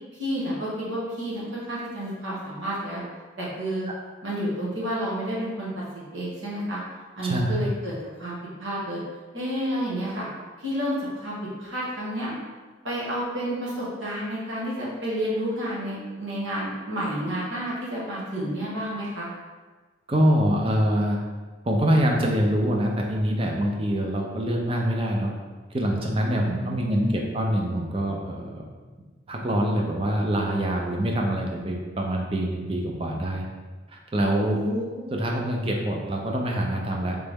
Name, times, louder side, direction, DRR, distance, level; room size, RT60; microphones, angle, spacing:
voice 1, 0.2-3.0 3.4-3.9 4.2-5.7 6.1-6.8 7.2-7.9 8.2-8.3 8.6-9.0 9.3-10.2 10.6-12.3 12.8-19.3 26.4-27.2 34.4-35.1, equal, 75° right, -7 dB, 1.4 m, -30 dB
voice 2, 7.2-7.7 20.1-21.2 21.6-25.3 25.7-28.6 29.3-33.4 33.9-34.6 35.1-37.2, equal, 30° right, 0 dB, 0.5 m, -25 dB
3.9 x 3.3 x 3.5 m, 1.3 s
head